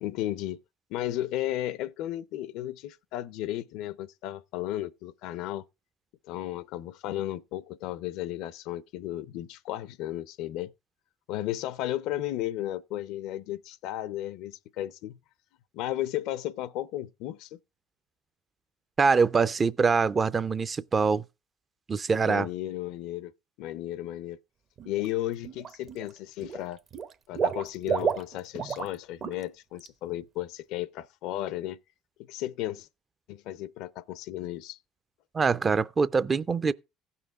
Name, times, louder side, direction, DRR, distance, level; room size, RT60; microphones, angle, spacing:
voice 1, 0.0-0.6 0.9-5.6 6.2-10.7 11.3-15.2 15.7-17.6 22.2-23.3 23.6-24.4 24.8-26.8 27.3-31.8 32.3-32.9 33.3-34.8, left 14 dB, 75° left, 0.5 m, -34 dB
voice 2, 19.0-21.2 21.9-22.5 35.3-36.7, right 5 dB, 30° right, 0.4 m, -24 dB
Water / Liquid, 24.8-25.1 25.4-26.1 26.4-28.9 29.2-29.4 29.8-29.9, right 7 dB, 45° right, 0.8 m, -31 dB
16.0 x 5.7 x 3.5 m
supercardioid pair, 105°, 0 cm